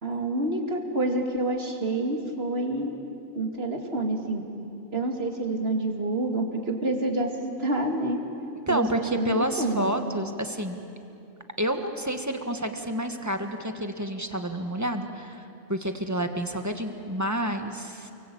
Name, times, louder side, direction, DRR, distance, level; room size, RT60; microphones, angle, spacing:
voice 1, 0.0-2.9 3.3-4.4 4.9-8.2 8.7-9.9, right 2 dB, 50° right, 3 dB, 2.8 m, -28 dB
voice 2, 8.7-10.8 11.6-18.1, equal, 15° right, 6 dB, 1.6 m, -29 dB
29.5 x 23.5 x 8.6 m, 2.6 s
omnidirectional pair, 1.3 m